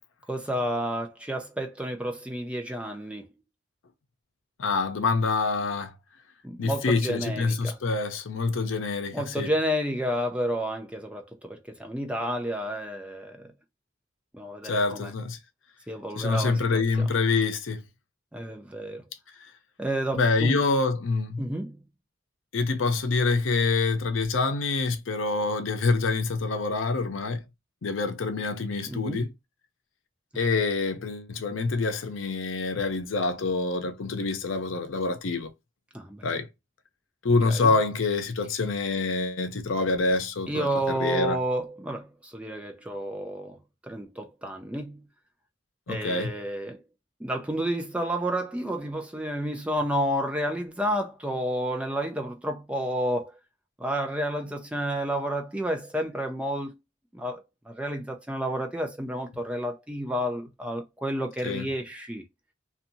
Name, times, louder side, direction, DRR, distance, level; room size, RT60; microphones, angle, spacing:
voice 1, 0.3-3.3 6.4-7.8 9.1-13.5 14.3-15.1 15.9-17.1 18.3-19.0 19.8-20.7 21.4-21.8 28.9-29.2 35.9-36.3 37.4-37.7 40.5-45.0 45.9-46.8 47.2-53.3 53.8-56.8 57.1-62.2, equal, 5° right, 0.4 m, -31 dB
voice 2, 4.6-5.9 6.6-9.5 14.6-15.4 16.1-17.8 19.4-19.5 20.1-21.4 22.5-27.4 27.8-29.3 30.3-35.5 36.2-36.5 37.2-41.4 45.9-46.3 61.4-61.6, left 3 dB, 90° left, 0.6 m, -26 dB
2.7 x 2.3 x 2.6 m
head